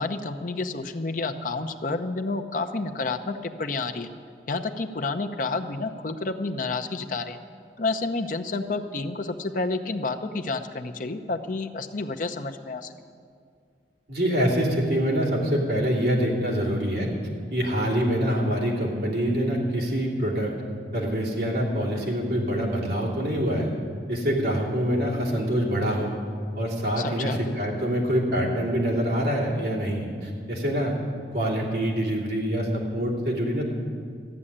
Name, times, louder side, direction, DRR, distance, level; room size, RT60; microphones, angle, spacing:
voice 1, 0.0-4.1 4.5-7.4 7.8-12.9 27.0-27.4, left 3 dB, 45° left, 7 dB, 0.7 m, -30 dB
voice 2, 14.1-17.1 17.5-20.5 20.9-23.7 24.1-26.1 26.5-30.9 31.3-33.6, equal, 55° right, -3 dB, 3.0 m, -25 dB
14.0 x 7.7 x 9.9 m, 2.2 s
head